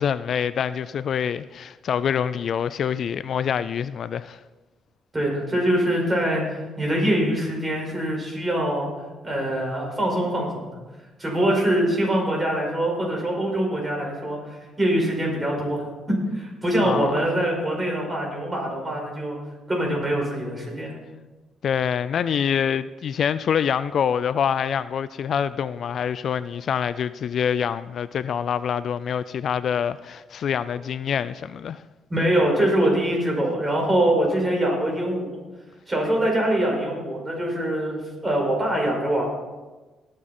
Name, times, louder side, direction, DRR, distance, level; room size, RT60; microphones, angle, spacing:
voice 1, 0.0-4.4 16.8-17.3 21.6-31.8, left 8 dB, 60° left, 0.3 m, -25 dB
voice 2, 5.1-8.9 9.2-10.8 11.2-15.8 16.3-19.4 19.7-20.9 32.1-35.4 35.9-39.2, right 1 dB, 20° right, 5.1 m, -24 dB
19.5 x 7.5 x 4.3 m
cardioid pair, 90°, 0 cm